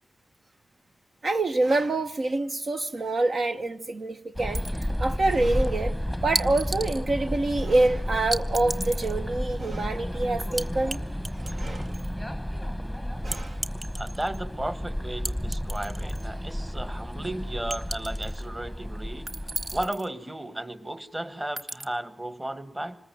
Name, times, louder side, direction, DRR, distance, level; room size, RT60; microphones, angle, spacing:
voice 1, 1.2-11.0 11.3-11.9 13.2-13.6, right 2 dB, 60° right, 1.1 m, -26 dB
sound 1, 4.4-19.9, equal, 5° right, 1.1 m, -32 dB
sound 2, 4.5-5.1 6.4-7.0 8.3-9.2 10.6-11.0 11.2-12.1 13.3-14.4 15.3-16.3 16.6-16.7 17.7-18.4 19.3-20.1 21.6-21.9, right 2 dB, 40° right, 1.3 m, -34 dB
voice 2, 13.9-19.3 19.7-23.0, right 1 dB, 20° right, 1.6 m, -34 dB
26.5 x 20.5 x 9.0 m
wide cardioid pair, 110°, 0 cm